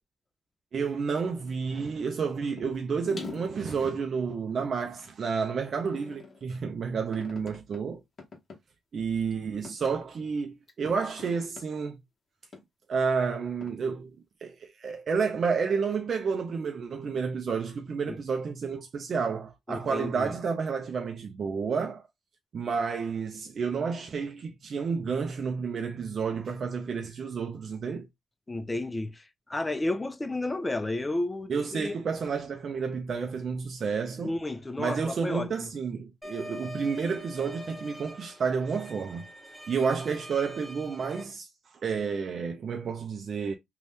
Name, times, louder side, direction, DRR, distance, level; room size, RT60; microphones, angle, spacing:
voice 1, 0.7-8.0 8.9-12.0 12.9-14.1 14.4-22.1 22.5-28.1 31.5-34.3 34.8-39.3 39.7-41.5 41.8-43.6, right 5 dB, 55° right, 0.5 m, -30 dB
sound 1, 2.6-2.7 3.1-5.0 5.7-6.5 7.1-7.8 8.2-8.6 9.2-9.3 9.6-10.0 10.7-11.6 12.5-12.6 13.6-13.7, left 4 dB, 45° left, 1.0 m, -44 dB
voice 2, 19.7-20.3 28.5-29.2 29.5-32.0 34.2-35.7, left 2 dB, 20° left, 0.4 m, -32 dB
sound 2, 36.2-41.2, left 1 dB, 5° right, 0.7 m, -45 dB
2.6 x 2.3 x 3.3 m
cardioid pair, 70°, 0 cm